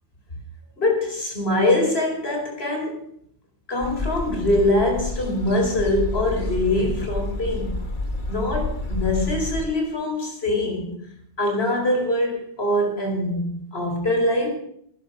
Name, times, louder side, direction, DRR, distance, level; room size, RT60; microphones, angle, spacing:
voice 1, 0.8-3.0 3.7-7.8 8.3-11.0 11.4-14.5, left 1 dB, 75° left, 2 dB, 4.9 m, -23 dB
sound 1, 3.8-9.7, left 2 dB, 50° left, 1.7 m, -29 dB
18.5 x 11.5 x 6.1 m, 0.71 s
omnidirectional pair, 1.1 m